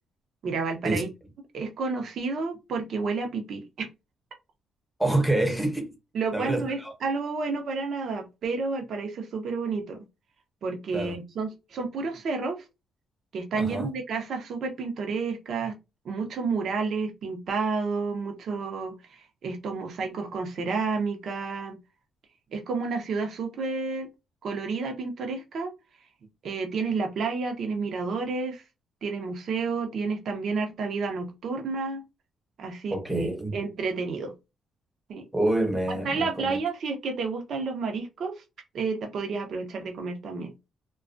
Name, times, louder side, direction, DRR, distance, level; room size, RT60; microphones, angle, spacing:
voice 1, 0.4-1.1 1.5-3.9 6.1-10.0 10.6-12.6 13.3-15.7 16.0-21.8 22.5-24.1 24.4-25.7 26.4-28.6 29.0-32.0 32.6-34.3 35.1-35.2 36.0-38.4 38.7-40.5, right 4 dB, 60° right, 0.7 m, -30 dB
voice 2, 5.0-5.9 6.3-6.9 10.9-11.2 13.5-13.9 32.9-33.6 35.3-36.6, right 2 dB, 5° right, 0.9 m, -27 dB
2.3 x 2.2 x 2.5 m
cardioid pair, 90°, 0 cm